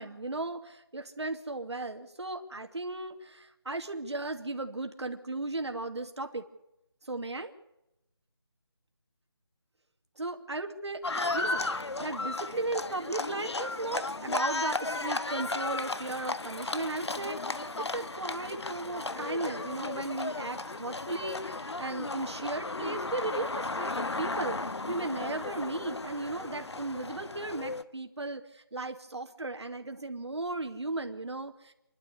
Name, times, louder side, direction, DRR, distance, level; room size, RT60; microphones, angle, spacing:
voice 1, 0.0-6.5 7.0-7.5 10.2-11.0 11.3-31.7, right 2 dB, 90° right, 5 dB, 2.5 m, -36 dB
Livestock farm animals working animals, 11.0-27.8, left 3 dB, 80° left, 1.4 m, -35 dB
28.5 x 12.0 x 8.4 m, 0.89 s
figure-of-eight pair, 180°, 14 cm